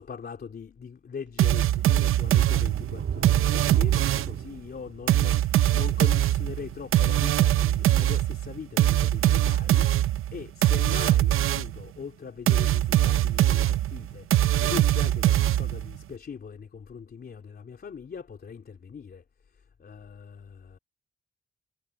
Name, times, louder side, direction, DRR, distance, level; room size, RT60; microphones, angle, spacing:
voice 1, 0.0-19.2 19.5-20.8, left 6 dB, 50° left, 3.6 m, -41 dB
sound 1, 1.4-4.4 5.1-11.8 12.5-16.0, right 13 dB, 90° right, 0.7 m, -22 dB
sound 2, 2.2-7.6 8.1-8.2 8.7-8.8, right 7 dB, 65° right, 2.4 m, -35 dB
cardioid pair, 105°, 21 cm